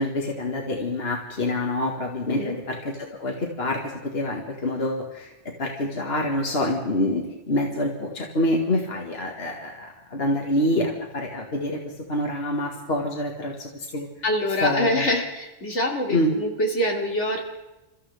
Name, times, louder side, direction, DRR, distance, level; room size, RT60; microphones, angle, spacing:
voice 1, 0.0-14.1 14.6-15.1 16.1-16.3, left 1 dB, 60° left, 0 dB, 2.0 m, -26 dB
voice 2, 14.2-17.5, left 1 dB, 80° left, -1 dB, 3.1 m, -25 dB
29.0 x 14.0 x 3.5 m, 1.0 s
omnidirectional pair, 1.2 m